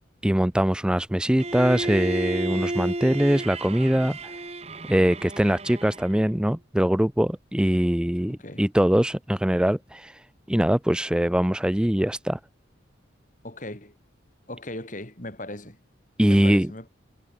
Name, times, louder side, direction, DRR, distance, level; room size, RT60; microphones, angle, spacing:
voice 1, 0.2-4.4 4.9-10.2 10.5-12.4 16.2-16.7, equal, 5° right, 0.4 m, -22 dB
Bowed string instrument, 1.4-6.3, right 2 dB, 30° right, 2.1 m, -32 dB
voice 2, 8.3-8.6 13.4-13.9 14.5-15.8 16.2-16.9, left 1 dB, 40° left, 4.5 m, -38 dB
head